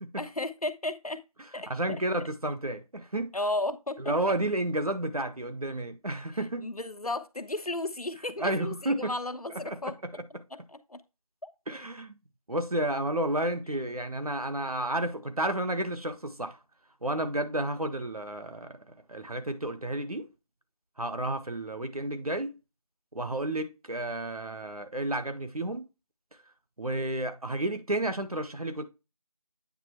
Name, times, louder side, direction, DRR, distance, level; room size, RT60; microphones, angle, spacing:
voice 1, 0.2-1.2 1.5-1.7 3.3-4.1 6.6-9.9 10.5-11.0, left 2 dB, 85° left, 1.1 m, -34 dB
voice 2, 1.7-3.3 4.0-6.7 8.4-9.1 9.6-9.9 10.3-10.4 11.7-12.2 12.5-16.6 17.0-18.8 19.1-20.3 21.0-22.5 23.1-25.8 26.8-28.8, right 1 dB, 80° right, 1.4 m, -31 dB
9.0 x 3.3 x 4.4 m
figure-of-eight pair, 170°, 19 cm